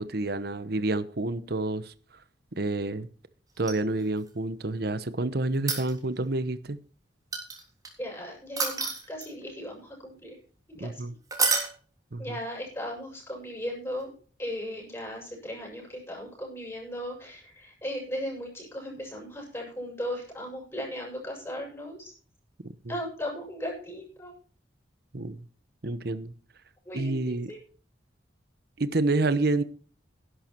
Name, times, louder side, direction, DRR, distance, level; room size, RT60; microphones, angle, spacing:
voice 1, 0.0-1.9 2.6-3.1 3.6-6.8 10.8-11.1 12.1-12.4 22.8-23.0 25.1-25.4 25.8-26.3 26.9-27.5 28.8-29.6, right 2 dB, 55° right, 1.0 m, -28 dB
sound 1, 3.6-4.3 5.5-6.3 7.3-7.9 8.6-9.5 11.3-11.7 14.0-14.1, right 4 dB, 20° right, 3.4 m, -28 dB
voice 2, 8.0-10.4 10.8-11.0 12.2-14.1 14.4-22.1 22.9-24.3 26.9-27.6, equal, 15° left, 6.8 m, -37 dB
11.5 x 11.5 x 4.5 m
head